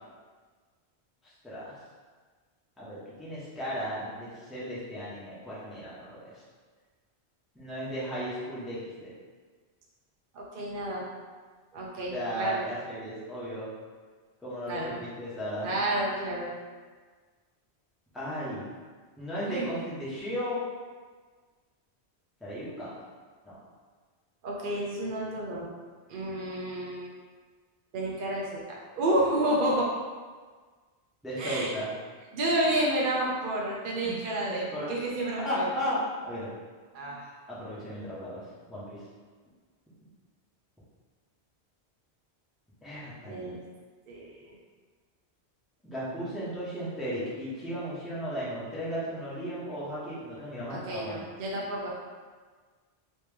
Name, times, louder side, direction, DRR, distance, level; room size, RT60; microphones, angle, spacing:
voice 1, 1.2-1.7 2.8-6.3 7.5-9.1 12.1-13.7 14.4-15.7 18.1-18.7 19.2-20.6 22.4-22.9 23.4-23.6 31.2-31.9 34.0-34.1 34.4-35.0 35.4-36.5 37.5-38.4 38.7-39.0 42.8-43.6 45.8-51.3, equal, ahead, -10 dB, 0.9 m, -35 dB
voice 2, 10.3-11.0 11.7-12.6 14.7-14.9 15.6-16.5 19.5-19.7 24.4-25.6 26.1-27.1 27.9-29.9 31.4-31.7 32.3-35.7 36.9-37.3 43.3-43.6 44.1-44.4 50.7-51.9, right 1 dB, 55° right, -4 dB, 0.7 m, -30 dB
3.1 x 2.9 x 3.4 m, 1.5 s
omnidirectional pair, 1.1 m